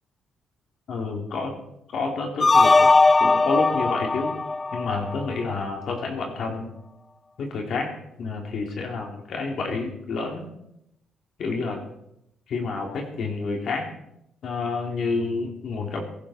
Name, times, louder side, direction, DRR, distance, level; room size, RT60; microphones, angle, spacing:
voice 1, 0.9-1.5 1.9-2.9 3.2-4.3 4.7-6.7 7.4-7.9 8.2-10.5 11.4-11.8 12.5-13.9 14.4-16.0, left 4 dB, 65° left, 2 dB, 3.3 m, -29 dB
sound 1, 2.4-5.5, left 3 dB, 25° left, 0.6 m, -19 dB
22.0 x 11.5 x 4.5 m, 0.79 s
cardioid pair, 90°, 0 cm